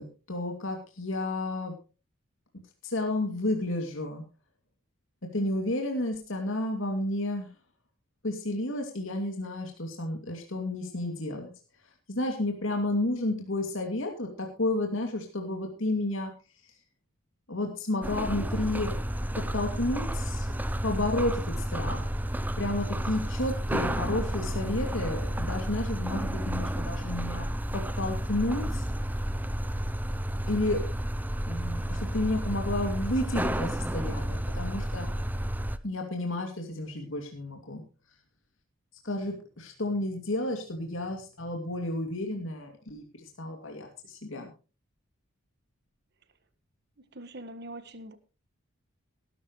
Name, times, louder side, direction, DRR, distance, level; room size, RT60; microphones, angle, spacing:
voice 1, 0.0-1.7 2.8-4.2 5.3-7.5 8.2-11.5 12.1-16.3 16.6-16.7 17.5-18.9 19.4-20.5 20.8-22.1 22.6-27.4 27.7-28.8 30.4-30.8 31.5-35.1 35.8-37.8 39.0-44.5, left 1 dB, 70° left, 2 dB, 2.6 m, -31 dB
sound 1, 18.0-35.8, right 1 dB, 10° right, 0.6 m, -31 dB
voice 2, 47.1-48.2, right 1 dB, 50° right, 11 dB, 1.5 m, -42 dB
18.0 x 12.0 x 3.2 m, 0.33 s
head